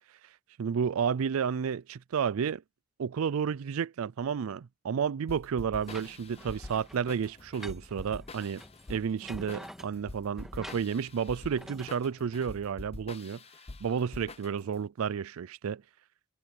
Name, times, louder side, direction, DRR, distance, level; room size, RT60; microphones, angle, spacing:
voice 1, 0.6-2.6 3.0-8.6 8.9-13.4 13.8-15.8, right 7 dB, 70° right, 0.4 m, -31 dB
sound 1, 5.3-14.8, left 2 dB, 30° left, 0.7 m, -46 dB
sound 2, 5.7-11.9, equal, ahead, 2.1 m, -49 dB
head